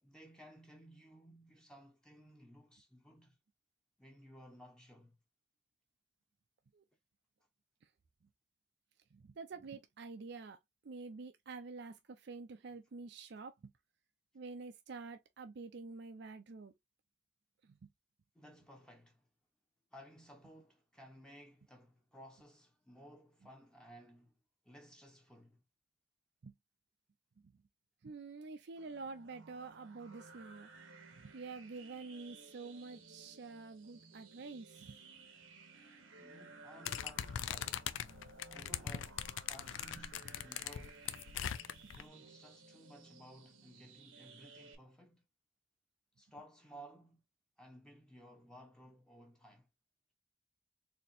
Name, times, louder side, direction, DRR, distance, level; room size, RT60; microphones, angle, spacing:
voice 1, 0.0-3.4 4.0-5.2 18.3-19.3 19.9-24.4 24.6-25.6 36.2-37.9 38.5-41.1 41.9-45.2 46.2-47.2 47.6-49.7, equal, 5° left, 0.7 m, -57 dB
voice 2, 9.1-13.7 14.3-16.7 17.6-17.9 23.4-23.5 26.4-26.5 27.4-27.5 28.0-30.7 31.2-35.0 39.9-40.0 41.8-42.1, right 4 dB, 60° right, 0.4 m, -48 dB
sound 1, 28.8-44.8, right 4 dB, 90° right, 1.1 m, -57 dB
sound 2, 36.8-42.0, left 9 dB, 75° left, 0.4 m, -41 dB
4.2 x 2.8 x 2.6 m
head